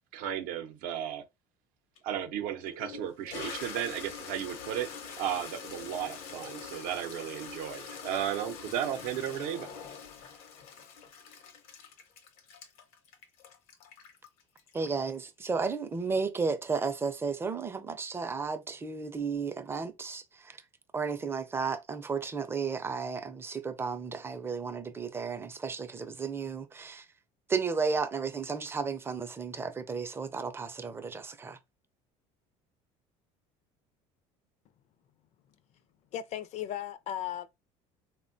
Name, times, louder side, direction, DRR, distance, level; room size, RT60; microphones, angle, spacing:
voice 1, 0.1-1.2 2.0-9.7, right 10 dB, 75° right, 0.6 m, -34 dB
Toilet flush, 2.0-2.1 2.7-15.1, left 6 dB, 80° left, 0.8 m, -44 dB
voice 2, 14.7-20.6 20.9-27.1 27.5-31.6, right 5 dB, 15° right, 0.4 m, -33 dB
voice 3, 36.1-37.5, left 11 dB, 50° left, 0.4 m, -36 dB
3.4 x 2.1 x 2.6 m
supercardioid pair, 105°, 14 cm